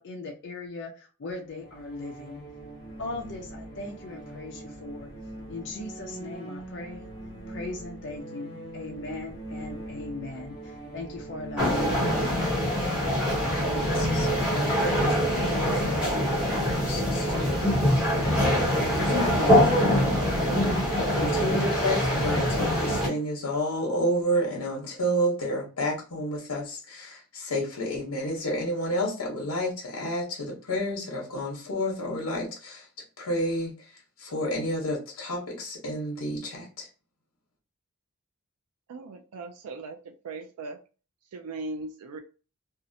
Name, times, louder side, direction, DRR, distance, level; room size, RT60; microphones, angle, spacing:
voice 1, 0.0-2.4 3.0-5.1 5.5-7.1 7.5-12.4, left 2 dB, 55° left, 0 dB, 0.5 m, -38 dB
sound 1, 1.5-20.1, right 1 dB, 20° left, 0.8 m, -42 dB
sound 2, 11.6-23.1, equal, 5° right, 0.9 m, -24 dB
voice 2, 13.4-17.7 18.7-20.7 21.1-32.9 33.2-33.7 34.2-36.9, equal, 85° left, -2 dB, 0.9 m, -31 dB
voice 3, 38.9-40.0 40.2-40.8 41.3-42.2, right 3 dB, 80° right, 6 dB, 0.4 m, -38 dB
2.7 x 2.1 x 2.6 m, 0.35 s
head